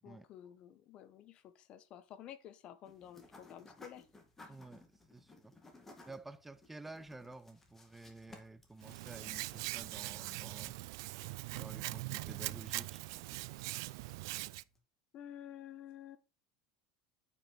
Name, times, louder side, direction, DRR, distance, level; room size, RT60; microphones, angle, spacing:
voice 1, 0.0-4.1 15.1-16.2, left 10 dB, 45° left, 1.1 m, -51 dB
sound 1, 2.8-14.8, left 2 dB, 15° left, 2.1 m, -61 dB
voice 2, 4.5-5.5 6.0-10.8 11.4-13.0, right 2 dB, 10° right, 0.6 m, -51 dB
Hands, 8.8-14.6, right 21 dB, 75° right, 0.4 m, -42 dB
8.9 x 5.5 x 4.2 m
supercardioid pair, 125°, 2 cm